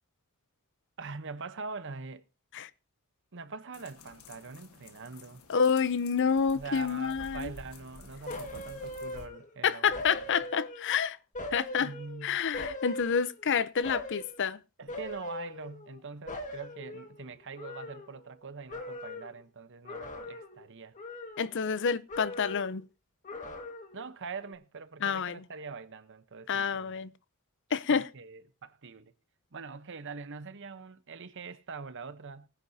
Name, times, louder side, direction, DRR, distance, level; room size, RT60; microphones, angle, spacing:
voice 1, 1.0-2.2 3.3-5.4 6.5-10.3 11.8-12.4 14.8-21.0 23.9-27.0 27.9-29.1 29.5-32.5, right 4 dB, 55° right, 0.9 m, -43 dB
sound 1, 3.7-9.3, left 3 dB, 70° left, 1.5 m, -51 dB
voice 2, 5.5-7.5 9.6-11.2 11.5-11.9 12.2-14.6 21.4-22.8 25.0-25.4 26.5-27.1 27.7-28.1, left 6 dB, 55° left, 0.6 m, -28 dB
sound 2, 8.3-9.5 9.9-11.0 11.4-13.5 13.8-14.4 14.9-16.0 16.3-18.4 18.7-19.4 19.8-20.7 21.0-21.8 22.1-22.8 23.2-24.1 24.4-24.5, left 1 dB, 35° left, 1.7 m, -41 dB
19.0 x 10.0 x 2.7 m
head